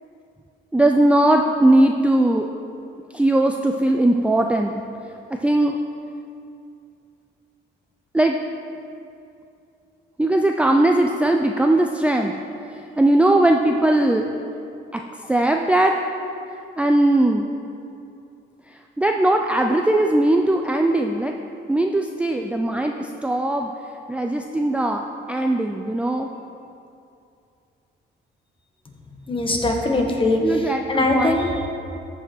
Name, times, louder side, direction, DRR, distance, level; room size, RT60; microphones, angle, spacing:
voice 1, 0.7-2.5 3.1-4.8 5.3-5.8 8.1-8.4 10.2-12.3 13.0-14.3 14.9-15.0 15.3-16.0 16.8-17.5 19.0-21.3 21.7-23.7 24.1-25.0 25.3-26.3 30.4-31.4, right 1 dB, 5° right, 3 dB, 0.4 m, -19 dB
voice 2, 29.3-31.7, left 2 dB, 25° left, 2 dB, 1.5 m, -21 dB
14.0 x 5.5 x 4.4 m, 2.6 s
cardioid pair, 90°, 20 cm